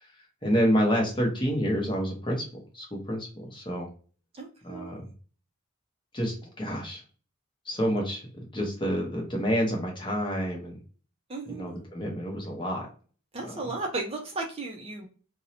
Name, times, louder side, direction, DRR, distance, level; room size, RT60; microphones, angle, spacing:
voice 1, 0.4-3.9 4.6-5.0 6.1-7.0 7.7-10.8 11.5-12.9 13.4-13.5, equal, 20° left, 0 dB, 0.7 m, -28 dB
voice 2, 4.3-5.0 11.3-11.8 13.3-15.1, right 3 dB, 25° right, 1 dB, 0.4 m, -35 dB
2.6 x 2.0 x 2.7 m, 0.38 s
head